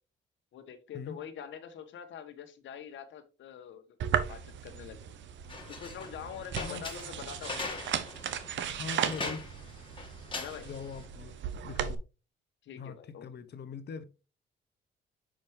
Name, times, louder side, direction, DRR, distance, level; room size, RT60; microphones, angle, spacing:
voice 1, 0.5-4.0 4.3-5.1 5.7-7.8 10.3-10.7 12.6-13.2, left 8 dB, 70° left, 1.3 m, -45 dB
sound 1, 4.0-11.9, right 9 dB, 70° right, 0.8 m, -36 dB
sound 2, 5.5-11.0, left 3 dB, 25° left, 1.8 m, -42 dB
voice 2, 6.6-6.9 8.7-9.4 10.6-12.0 12.8-14.0, left 5 dB, 55° left, 0.9 m, -42 dB
5.8 x 5.0 x 3.3 m
cardioid pair, 90°, 20 cm